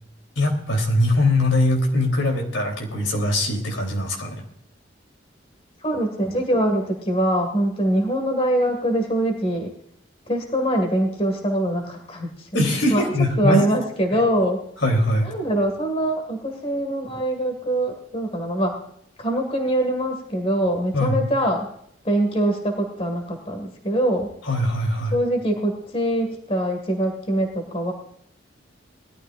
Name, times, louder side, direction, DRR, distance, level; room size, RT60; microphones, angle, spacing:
voice 1, 0.4-4.4 12.5-13.6 14.8-15.3 20.9-21.2 24.4-25.1, left 1 dB, 85° left, 2 dB, 3.5 m, -21 dB
voice 2, 5.8-9.7 10.3-12.5 12.9-13.0 13.4-14.7 15.2-18.8 19.2-21.7 22.0-24.3 25.1-27.9, right 1 dB, 30° left, 4 dB, 2.0 m, -23 dB
20.5 x 12.5 x 2.6 m, 0.70 s
head